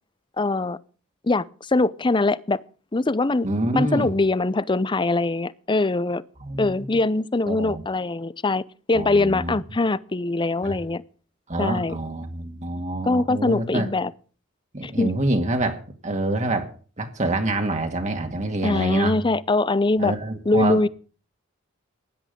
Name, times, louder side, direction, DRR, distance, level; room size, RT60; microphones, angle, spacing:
voice 1, 0.4-0.8 1.2-2.6 2.9-3.5 3.7-6.2 6.6-11.0 11.6-12.0 13.1-14.1 14.8-15.1 18.6-20.2 20.5-20.9, left 2 dB, 25° left, 0.6 m, -22 dB
voice 2, 3.4-4.1 6.4-6.9 7.5-7.8 8.9-9.5 10.6-10.7 11.5-13.9 14.7-16.7 17.0-19.2 20.0-20.9, right 2 dB, 35° right, 2.0 m, -26 dB
16.5 x 11.0 x 5.2 m
head